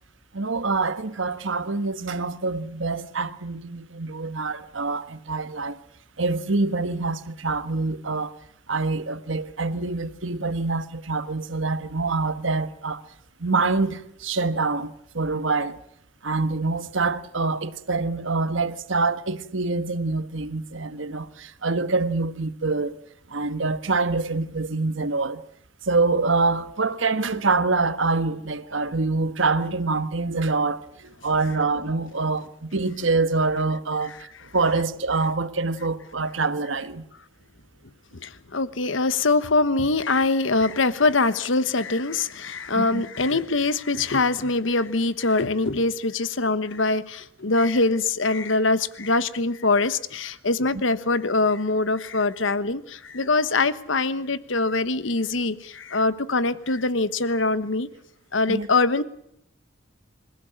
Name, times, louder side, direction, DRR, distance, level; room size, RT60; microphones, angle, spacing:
voice 1, 0.3-5.8 6.2-8.3 8.7-13.0 13.4-15.8 16.2-23.0 23.3-25.4 25.9-37.0 42.7-43.0 58.5-58.7, right 3 dB, 75° right, 1.4 m, -25 dB
voice 2, 38.2-57.9 58.3-59.0, left 3 dB, 75° left, 1.2 m, -23 dB
26.5 x 15.5 x 8.8 m
head